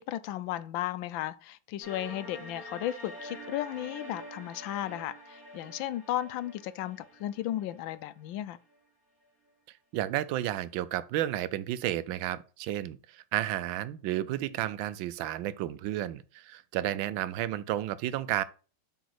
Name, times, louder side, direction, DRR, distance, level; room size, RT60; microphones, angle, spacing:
voice 1, 0.0-8.6, left 13 dB, 90° left, 1.3 m, -35 dB
sound 1, 1.8-8.8, equal, 5° right, 3.6 m, -47 dB
voice 2, 9.9-18.4, right 13 dB, 85° right, 1.4 m, -32 dB
7.9 x 4.1 x 4.7 m
omnidirectional pair, 2.1 m